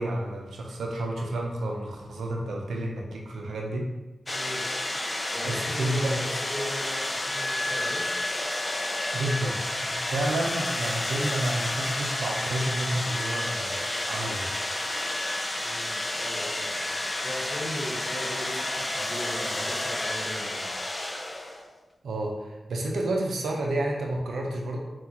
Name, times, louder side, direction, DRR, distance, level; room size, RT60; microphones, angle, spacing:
voice 1, 0.0-3.9 5.4-6.2 9.1-13.8 14.1-14.5 22.0-24.8, right 1 dB, 90° right, 0 dB, 0.5 m, -30 dB
sound 1, 4.3-21.8, left 1 dB, 30° left, 0.4 m, -30 dB
voice 2, 4.3-4.7 5.3-8.1 15.6-16.8 17.2-20.7, equal, 10° left, -5 dB, 1.5 m, -38 dB
5.7 x 2.4 x 2.9 m, 1.1 s
cardioid pair, 65°, 0 cm